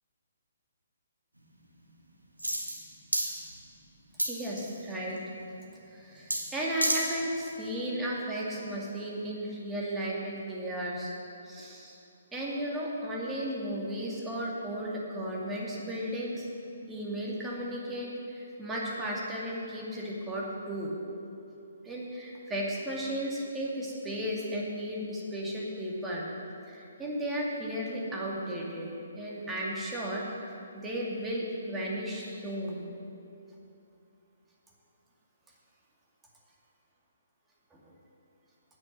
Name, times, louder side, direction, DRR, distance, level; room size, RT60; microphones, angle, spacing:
sound 1, 2.4-2.8 3.1-3.3 4.2-4.8 6.3-6.4 6.7-7.0 7.5-7.6, right 1 dB, 90° right, 2.1 m, -29 dB
voice 1, 4.3-5.2 5.9-11.2 11.4-12.0 12.3-16.5 16.9-21.0 21.8-26.3 26.7-30.2 30.7-32.8 37.7-37.9, equal, 10° right, -4 dB, 2.4 m, -34 dB
10.0 x 9.3 x 7.4 m, 2.7 s
figure-of-eight pair, 130°, 0 cm